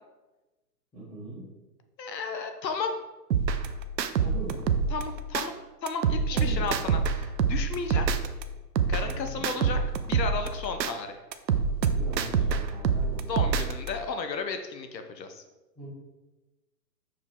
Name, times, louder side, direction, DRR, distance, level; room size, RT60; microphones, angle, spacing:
voice 1, 0.9-1.4 4.2-4.7 6.3-6.7 9.0-9.4 11.9-13.2 15.7-15.9, right 2 dB, ahead, -12 dB, 0.7 m, -40 dB
voice 2, 2.0-2.9 4.9-5.5 5.8-8.1 8.9-9.8 10.1-11.2 13.2-15.4, left 5 dB, 85° left, 7 dB, 1.1 m, -33 dB
sound 1, 3.3-5.5 5.9-8.4 8.8-10.9 11.3-13.9, right 6 dB, 85° right, 0.7 m, -26 dB
6.3 x 5.0 x 3.7 m, 1.1 s
hypercardioid pair, 165°, 49 cm